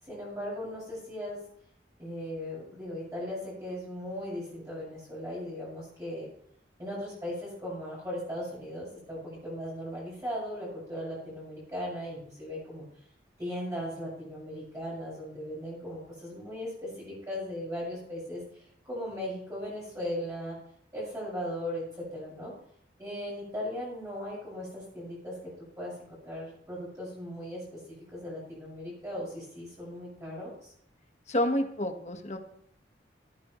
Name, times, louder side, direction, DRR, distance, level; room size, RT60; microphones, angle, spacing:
voice 1, 0.0-1.4 2.0-6.3 6.8-12.9 13.4-20.6 20.9-22.5 23.0-30.7, equal, 15° right, -8 dB, 6.2 m, -38 dB
voice 2, 31.3-32.4, left 1 dB, 40° left, 4 dB, 1.5 m, -29 dB
15.0 x 14.5 x 3.2 m, 0.67 s
head